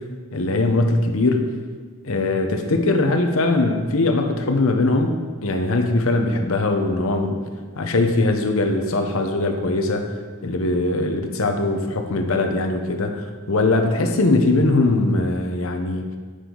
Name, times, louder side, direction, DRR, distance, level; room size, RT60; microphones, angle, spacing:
voice 1, 0.3-1.5 2.0-5.2 5.4-7.4 7.8-10.0 10.4-16.1, left 2 dB, 65° left, 5 dB, 0.9 m, -21 dB
10.0 x 6.5 x 3.9 m, 1.6 s
head